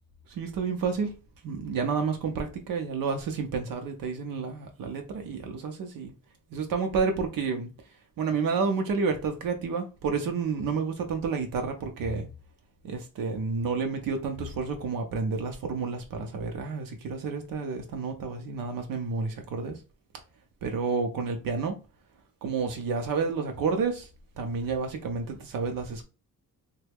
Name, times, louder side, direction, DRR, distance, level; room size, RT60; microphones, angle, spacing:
voice 1, 0.3-1.2 1.4-6.1 6.5-7.7 8.2-12.3 12.8-19.7 20.6-21.8 22.4-24.1 24.4-26.0, right 5 dB, 80° right, 0.6 m, -30 dB
3.1 x 2.2 x 3.3 m
wide cardioid pair, 170°, 34 cm